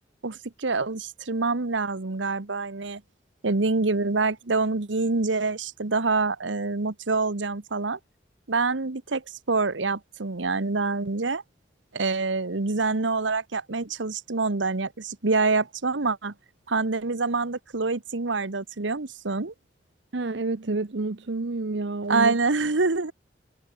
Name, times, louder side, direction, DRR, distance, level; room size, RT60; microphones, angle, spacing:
voice 1, 0.2-3.0 3.4-8.0 8.5-9.2 9.5-11.4 11.9-16.3 16.7-19.5 22.1-23.1, right 3 dB, 90° right, 1.2 m, -26 dB
voice 2, 20.1-22.4, right 3 dB, 75° right, 0.8 m, -29 dB
head